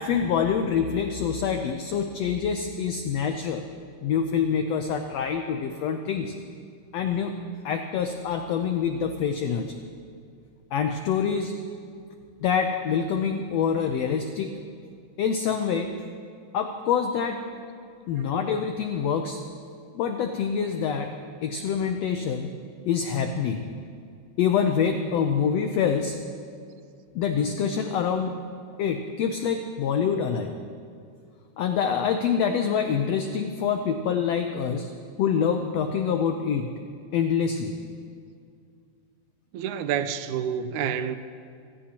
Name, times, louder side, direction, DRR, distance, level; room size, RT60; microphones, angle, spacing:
voice 1, 0.0-3.6 4.0-6.3 6.9-7.3 7.6-9.7 10.7-11.5 12.4-14.5 15.2-15.9 16.5-17.4 18.1-19.4 19.9-21.1 21.4-22.5 22.8-23.7 24.4-26.2 27.1-28.3 28.8-30.6 31.6-34.9 35.2-36.7 37.1-37.7, left 7 dB, 80° left, 5 dB, 1.5 m, -26 dB
voice 2, 39.5-41.2, right 8 dB, 75° right, 10 dB, 1.9 m, -28 dB
26.5 x 16.5 x 2.9 m, 2.4 s
omnidirectional pair, 3.8 m